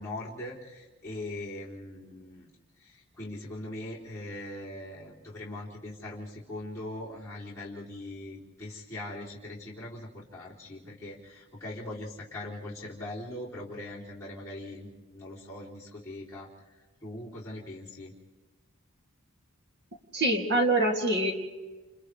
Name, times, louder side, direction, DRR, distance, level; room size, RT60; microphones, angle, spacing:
voice 1, 0.0-2.5 2.8-16.5 17.0-18.1, left 1 dB, 15° left, -8 dB, 3.2 m, -41 dB
voice 2, 20.1-21.3, right 1 dB, 50° right, 2 dB, 2.5 m, -24 dB
29.5 x 28.5 x 3.3 m, 1.2 s
head